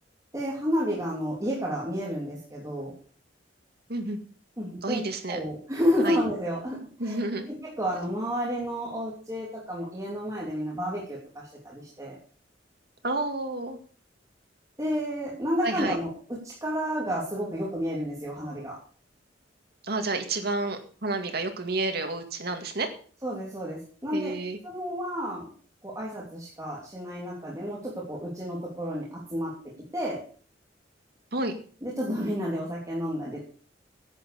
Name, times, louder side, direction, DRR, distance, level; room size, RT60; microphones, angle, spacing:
voice 1, 0.3-2.9 4.6-5.0 5.3-7.2 7.5-12.2 14.8-16.1 16.4-18.8 23.2-24.3 24.6-25.5 25.8-30.2 31.8-33.4, equal, 15° right, -5 dB, 3.1 m, -31 dB
voice 2, 4.8-5.4 6.0-6.2 7.0-7.5 13.0-13.8 15.6-16.0 19.8-22.9 24.1-24.6 31.3-31.5, right 2 dB, 55° right, 6 dB, 2.2 m, -30 dB
10.5 x 9.0 x 7.1 m, 0.43 s
head